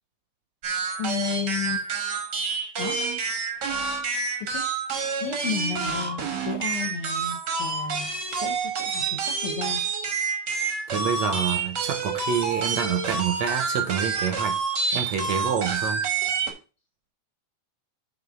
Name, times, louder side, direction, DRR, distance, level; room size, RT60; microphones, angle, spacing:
sound 1, 0.6-16.5, right 5 dB, 55° right, 1.2 m, -28 dB
voice 1, 1.0-1.9 2.8-3.0 4.4-4.6 5.2-9.8, left 7 dB, 60° left, 1.5 m, -33 dB
voice 2, 10.9-14.6 14.9-16.0, right 8 dB, 70° right, 1.8 m, -27 dB
9.3 x 3.4 x 4.8 m
omnidirectional pair, 3.5 m